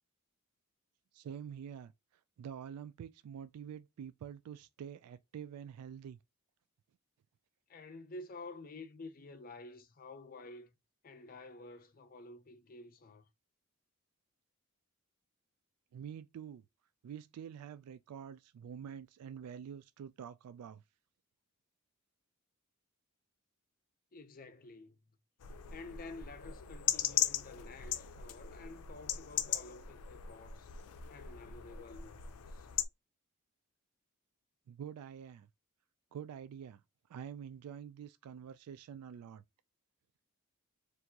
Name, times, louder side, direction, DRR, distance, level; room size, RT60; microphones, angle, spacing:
voice 1, 1.1-1.9 2.4-6.2 15.9-16.6 17.0-20.8 34.7-35.5 36.1-36.8 37.1-39.4, right 8 dB, 85° right, 0.3 m, -47 dB
voice 2, 7.7-10.7 11.0-13.3 24.1-25.0 25.7-30.7 31.1-32.7, left 2 dB, 40° left, 0.5 m, -50 dB
sound 1, 25.4-32.8, left 11 dB, 85° left, 0.5 m, -38 dB
4.4 x 2.5 x 2.8 m
head